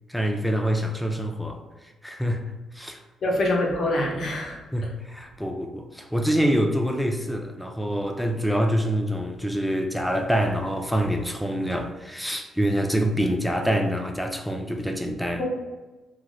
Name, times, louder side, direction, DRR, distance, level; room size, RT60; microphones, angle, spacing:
voice 1, 0.1-2.4 2.7-3.0 4.7-15.4, equal, ahead, 3 dB, 0.4 m, -26 dB
voice 2, 3.2-4.6 15.4-15.5, left 1 dB, 55° left, -2 dB, 0.8 m, -24 dB
2.6 x 2.4 x 3.1 m, 1.2 s
cardioid pair, 90°, 0 cm